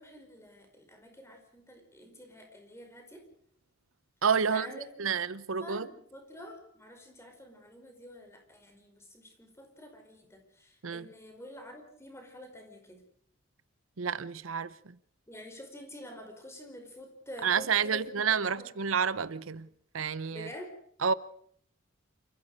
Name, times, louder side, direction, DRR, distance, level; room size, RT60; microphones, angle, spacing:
voice 1, 0.0-3.2 4.5-5.2 5.6-13.0 15.3-18.7 20.3-20.8, left 1 dB, 15° left, 5.0 m, -48 dB
voice 2, 4.2-5.9 10.8-11.1 14.0-14.7 17.4-19.7 19.9-20.5 21.0-21.1, right 6 dB, 80° right, 0.8 m, -29 dB
28.0 x 15.0 x 6.6 m
head